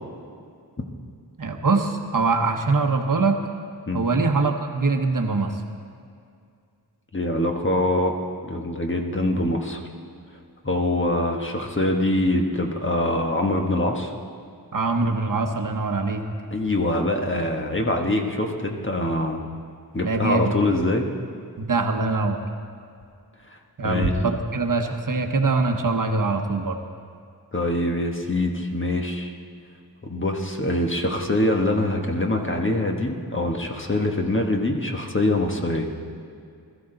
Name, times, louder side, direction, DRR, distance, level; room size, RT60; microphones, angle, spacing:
voice 1, 1.4-3.4 3.9-5.6 14.7-16.2 20.0-20.5 21.6-22.4 23.8-26.8, right 3 dB, 50° right, 5 dB, 1.1 m, -23 dB
voice 2, 7.1-8.2 8.4-9.8 10.6-14.1 16.5-19.4 19.9-21.1 23.8-24.1 27.5-29.3 30.0-35.9, left 1 dB, 30° left, 2 dB, 1.4 m, -24 dB
21.0 x 13.5 x 3.9 m, 2.3 s
wide cardioid pair, 95°, 40 cm